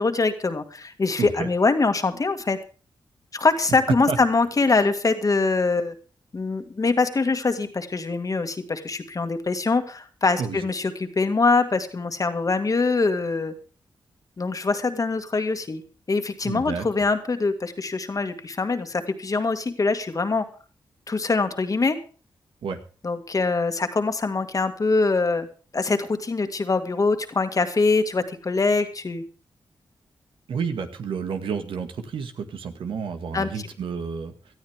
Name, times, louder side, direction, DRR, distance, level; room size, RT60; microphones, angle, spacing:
voice 1, 0.0-2.6 3.3-5.9 6.3-13.5 14.4-15.8 16.1-20.5 21.1-22.0 23.0-25.5 25.7-29.2 33.3-33.5, left 3 dB, 40° left, 8 dB, 2.0 m, -23 dB
voice 2, 1.2-1.5 4.1-4.2 10.4-10.6 16.4-16.9 22.6-22.8 30.5-34.3, right 6 dB, 85° right, 7 dB, 2.0 m, -30 dB
18.5 x 13.0 x 3.6 m, 0.38 s
cardioid pair, 70°, 9 cm